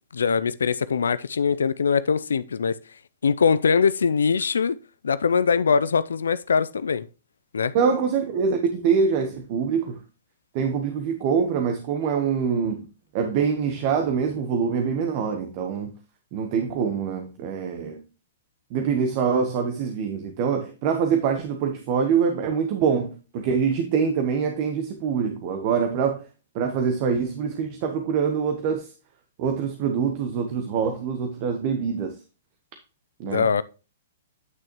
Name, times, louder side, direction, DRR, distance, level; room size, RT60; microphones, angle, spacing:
voice 1, 0.1-2.8 3.2-4.8 5.0-7.1 7.5-7.7 33.2-33.6, left 6 dB, 80° left, 0.4 m, -22 dB
voice 2, 7.7-10.0 10.5-12.8 13.1-15.9 16.3-18.0 18.7-26.3 26.5-28.9 29.4-32.2 33.2-33.5, right 6 dB, 45° right, 1.1 m, -24 dB
9.3 x 6.1 x 3.0 m
hypercardioid pair, 120°, 0 cm